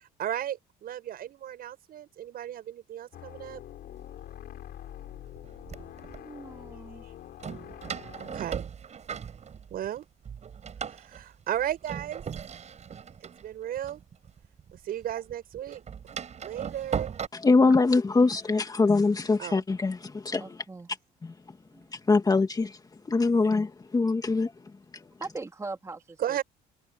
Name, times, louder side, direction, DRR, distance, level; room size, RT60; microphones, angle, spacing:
voice 1, 0.2-3.6 8.2-8.6 9.7-10.1 10.9-12.2 13.4-14.0 14.8-15.8 16.4-17.1 19.4-19.6 23.3-23.5 26.2-26.4, right 11 dB, 60° right, 7.4 m, -34 dB
sound 1, 3.1-8.5, left 12 dB, 65° left, 6.0 m, -45 dB
Door, 4.2-4.3 5.1-6.2 7.4-10.0 10.2-14.8 15.0-17.3, right 7 dB, 40° right, 7.6 m, -38 dB
voice 2, 6.2-7.0 20.4-20.9 21.7-21.8 25.2-26.4, right 3 dB, 15° right, 3.2 m, -40 dB
voice 3, 17.3-20.6 21.2-21.3 21.9-22.8 23.1-24.5, left 3 dB, 20° left, 2.3 m, -23 dB
cardioid pair, 110°, 17 cm